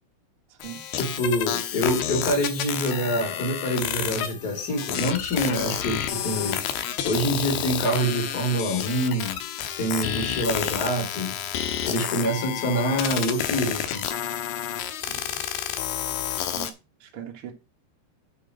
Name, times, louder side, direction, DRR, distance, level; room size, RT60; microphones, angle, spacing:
sound 1, 0.6-16.7, left 10 dB, 80° left, 2.9 m, -30 dB
voice 1, 0.9-6.6 7.0-9.4 9.8-11.4 11.8-14.1, equal, 25° left, 3.0 m, -26 dB
voice 2, 15.1-15.4 16.5-16.7 17.0-17.5, right 10 dB, 65° right, 1.3 m, -40 dB
9.0 x 4.9 x 4.7 m
omnidirectional pair, 4.6 m